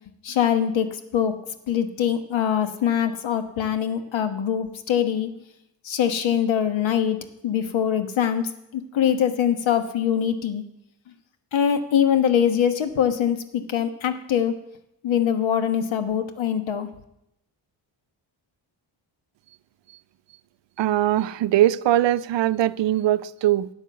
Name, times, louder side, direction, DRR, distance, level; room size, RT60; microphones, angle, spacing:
voice 1, 0.2-1.4 1.7-5.3 5.8-7.2 7.4-10.6 11.5-14.6 15.0-16.9, left 9 dB, 80° left, 1.3 m, -23 dB
voice 2, 20.8-23.7, right 13 dB, 70° right, 0.6 m, -21 dB
12.0 x 8.9 x 7.1 m
cardioid pair, 90°, 46 cm